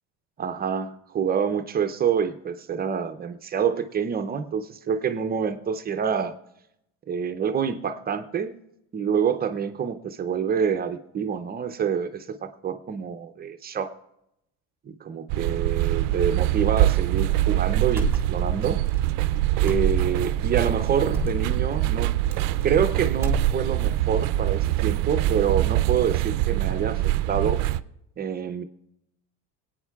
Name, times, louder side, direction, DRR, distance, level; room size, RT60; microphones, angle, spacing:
voice 1, 0.4-6.3 7.1-8.6 8.9-13.9 14.9-18.8 19.6-22.1 22.6-27.0 27.3-27.6 28.2-28.6, right 7 dB, 25° right, 9 dB, 0.6 m, -27 dB
sound 1, 15.3-27.8, right 15 dB, 70° right, 0.5 m, -24 dB
sound 2, 18.0-18.6 18.9-19.0 19.7-20.3 21.1-21.5 22.3-22.9 23.1-23.9, right 2 dB, 5° right, 1.7 m, -28 dB
25.5 x 9.0 x 2.3 m, 0.81 s
cardioid pair, 135°, 36 cm